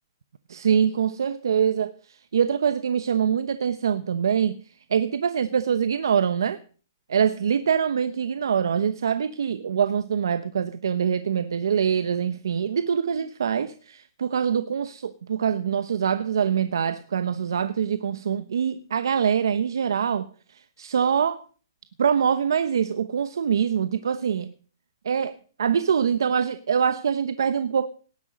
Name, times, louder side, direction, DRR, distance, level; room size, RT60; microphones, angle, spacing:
voice 1, 0.5-1.9 2.3-4.6 4.9-6.6 7.1-20.3 20.8-21.4 22.0-24.5 25.0-25.3 25.6-27.9, right 7 dB, 80° right, 0.9 m, -24 dB
18.0 x 11.0 x 5.2 m
hypercardioid pair, 155°, 2 cm